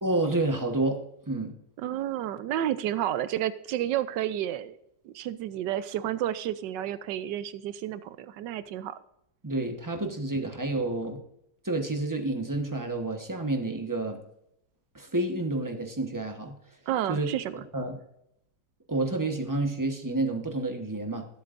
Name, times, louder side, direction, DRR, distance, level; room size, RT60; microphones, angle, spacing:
voice 1, 0.0-1.5 9.4-11.2 11.6-14.2 14.9-16.6 17.1-18.0 18.9-21.2, right 2 dB, 15° right, 4 dB, 0.9 m, -29 dB
voice 2, 1.8-4.8 5.0-8.9 16.9-17.6, right 12 dB, 80° right, 14 dB, 1.2 m, -31 dB
20.0 x 7.9 x 2.6 m, 0.79 s
omnidirectional pair, 1.9 m